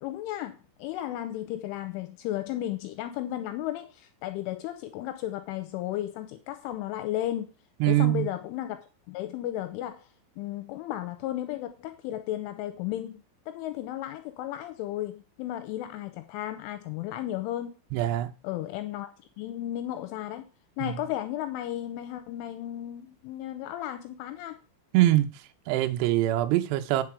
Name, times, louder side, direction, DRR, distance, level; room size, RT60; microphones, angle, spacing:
voice 1, 0.0-7.5 7.9-8.8 9.1-10.1 10.4-17.8 18.4-19.1 19.4-20.5 20.8-24.6, left 13 dB, 85° left, 9 dB, 3.0 m, -34 dB
voice 2, 7.8-8.3 17.9-18.3 20.8-20.9 24.9-25.3 25.7-27.0, right 15 dB, 85° right, 8 dB, 2.4 m, -23 dB
9.1 x 6.6 x 4.8 m, 0.33 s
omnidirectional pair, 5.9 m